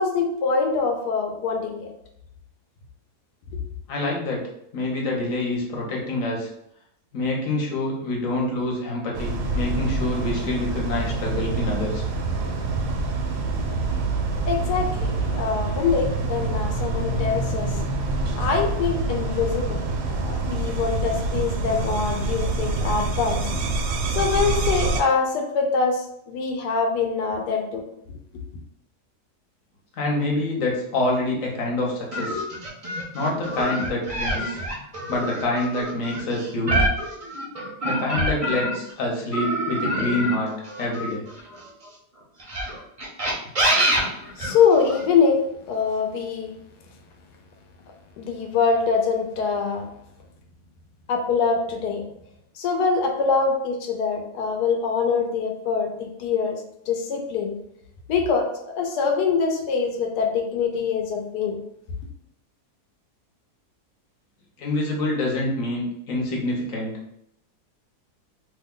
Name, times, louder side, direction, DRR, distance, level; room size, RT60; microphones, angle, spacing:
voice 1, 0.0-1.9 14.5-17.8 18.3-19.8 20.1-23.5 24.1-27.8 44.4-46.5 48.2-49.9 51.1-52.0 52.6-57.5 58.1-61.6, left 5 dB, 90° left, 3 dB, 1.2 m, -24 dB
voice 2, 3.9-4.4 4.7-6.5 7.1-12.0 30.0-32.4 33.1-34.6 35.1-36.9 37.8-40.5 40.8-41.3 64.6-66.9, left 2 dB, 60° left, -2 dB, 1.1 m, -26 dB
sound 1, 9.1-25.0, right 2 dB, 90° right, 1.2 m, -26 dB
sound 2, 32.1-38.9 39.3-41.7 42.4-45.0, right 1 dB, 50° right, 0.4 m, -26 dB
2.9 x 2.2 x 3.6 m, 0.75 s
omnidirectional pair, 1.7 m